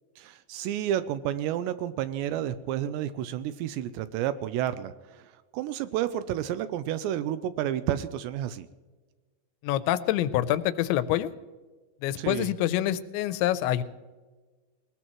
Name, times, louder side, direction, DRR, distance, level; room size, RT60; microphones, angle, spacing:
voice 1, 0.2-8.7 12.2-12.5, right 11 dB, 80° right, 13 dB, 2.7 m, -31 dB
voice 2, 9.6-11.3 12.0-13.8, left 13 dB, 85° left, 14 dB, 3.0 m, -26 dB
20.5 x 19.5 x 3.1 m, 1.3 s
omnidirectional pair, 5.2 m